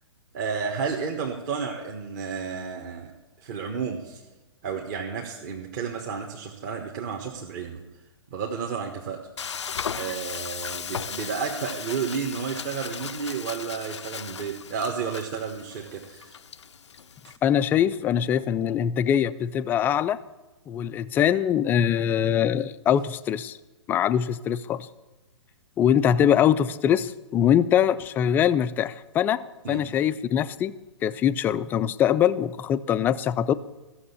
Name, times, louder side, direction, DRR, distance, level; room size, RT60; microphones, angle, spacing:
voice 1, 0.3-3.1 3.4-4.2 4.6-7.8 8.3-9.3 9.9-16.4 17.2-17.3 29.6-29.9, right 6 dB, 40° right, 0 dB, 1.4 m, -32 dB
Frying (food), 9.4-17.4, left 7 dB, 75° left, 0.5 m, -37 dB
voice 2, 17.4-20.2 20.7-23.6 23.9-24.9 25.8-30.7 31.0-33.5, left 9 dB, 15° left, 14 dB, 0.3 m, -23 dB
14.5 x 7.1 x 8.4 m, 1.1 s
figure-of-eight pair, 120°, 15 cm